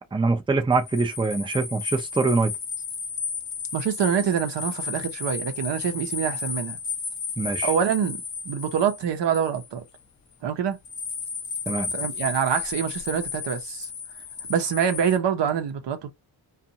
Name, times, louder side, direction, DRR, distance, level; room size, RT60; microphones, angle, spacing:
voice 1, 0.1-2.5 7.4-7.7 11.7-11.9, right 3 dB, 10° right, 0.6 m, -24 dB
sound 1, 0.7-10.0 10.8-15.2, left 6 dB, 40° left, 0.7 m, -33 dB
voice 2, 3.7-6.8 7.6-9.8 10.4-10.8 11.9-13.9 14.5-16.1, right 8 dB, 70° right, 0.8 m, -25 dB
2.6 x 2.4 x 2.8 m
cardioid pair, 65°, 44 cm